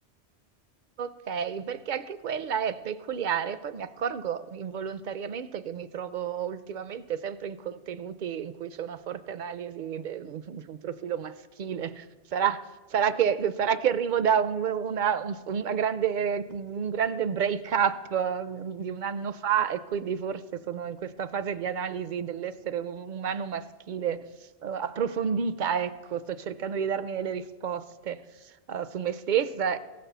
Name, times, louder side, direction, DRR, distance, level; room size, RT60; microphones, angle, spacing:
voice 1, 1.0-12.1 12.3-24.3 24.6-29.8, right 7 dB, 55° right, 14 dB, 0.6 m, -30 dB
16.0 x 6.7 x 6.7 m, 1.2 s
omnidirectional pair, 1.2 m